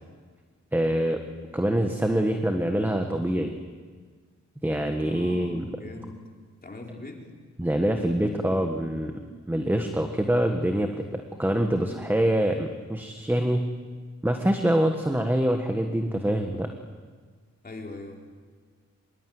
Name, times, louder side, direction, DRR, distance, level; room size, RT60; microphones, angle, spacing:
voice 1, 0.7-1.2 1.5-3.5 4.6-5.6 7.6-9.1 9.5-13.7 14.2-16.7, right 1 dB, 5° right, 4 dB, 1.5 m, -25 dB
voice 2, 5.1-6.2 6.6-7.2 17.6-18.2, left 2 dB, 30° left, 0 dB, 4.2 m, -40 dB
25.0 x 22.5 x 9.5 m, 1.5 s
wide cardioid pair, 150°, 29 cm